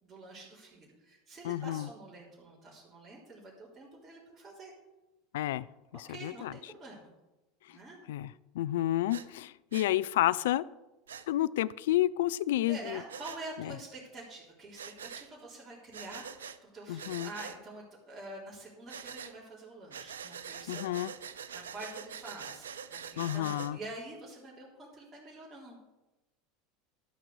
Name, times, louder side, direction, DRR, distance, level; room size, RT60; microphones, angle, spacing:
voice 1, 0.0-4.7 6.1-7.1 7.7-8.0 12.6-25.8, right 2 dB, 25° right, -7 dB, 3.6 m, -47 dB
voice 2, 1.4-1.9 5.3-5.7 5.9-6.5 8.1-8.3 8.5-10.6 11.3-13.0 13.6-13.7 16.9-17.3 20.7-21.1 23.2-23.8, left 14 dB, 70° left, 18 dB, 0.3 m, -30 dB
Breathing, 9.1-9.3 9.7-9.9 11.1-11.3 13.1-13.4 14.8-15.3 15.9-16.6 17.0-17.6 18.9-19.3 19.9-23.7, right 7 dB, 85° right, 0.6 m, -44 dB
12.5 x 6.0 x 6.6 m, 1.0 s
hypercardioid pair, 80°, 0 cm